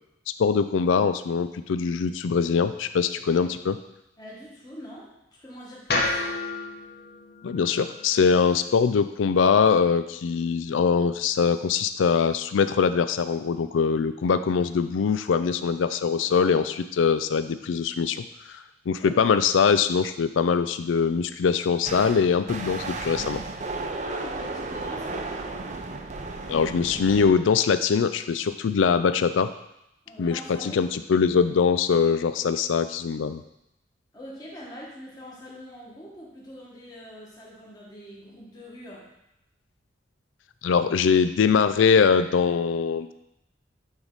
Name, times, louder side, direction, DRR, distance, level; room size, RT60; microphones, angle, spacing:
voice 1, 0.4-3.8 7.4-18.2 18.9-23.4 26.5-29.5 30.2-33.4 40.6-43.1, left 6 dB, 90° left, 12 dB, 0.4 m, -22 dB
voice 2, 4.2-6.2 19.0-19.3 24.0-25.4 30.0-30.8 34.1-39.1, equal, 20° left, -5 dB, 1.5 m, -43 dB
sound 1, 5.9-10.1, left 2 dB, 55° left, 0.9 m, -32 dB
sound 2, 21.8-27.3, right 3 dB, 40° right, 0.5 m, -34 dB
8.9 x 3.5 x 4.0 m, 0.85 s
head